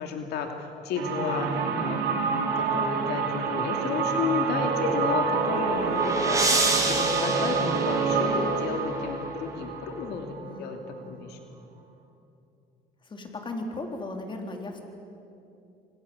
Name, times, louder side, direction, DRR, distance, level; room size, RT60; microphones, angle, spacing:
voice 1, 0.0-10.8 11.1-11.4, left 5 dB, 80° left, 3 dB, 2.8 m, -32 dB
sound 1, 1.0-10.7, right 5 dB, 80° right, 4.1 m, -27 dB
sound 2, 5.3-8.7, right 3 dB, 20° right, 4.2 m, -29 dB
voice 2, 13.0-14.8, left 2 dB, 30° left, 3 dB, 4.1 m, -36 dB
29.0 x 25.5 x 7.3 m, 2.7 s
cardioid pair, 110°, 17 cm